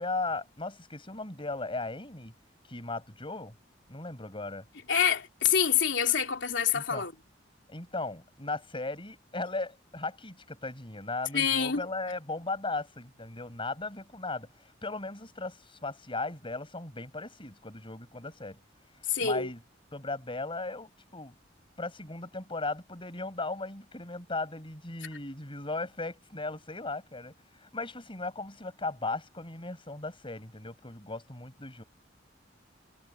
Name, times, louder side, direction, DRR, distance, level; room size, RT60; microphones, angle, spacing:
voice 1, 0.0-2.3 2.7-3.5 3.9-4.6 6.7-7.1 7.7-18.6 19.2-19.6 19.9-21.3 21.8-27.3 27.6-31.8, left 3 dB, 30° left, 6.6 m, -37 dB
voice 2, 4.9-7.1 11.3-11.8 19.1-19.5, left 7 dB, 75° left, 3.2 m, -26 dB
head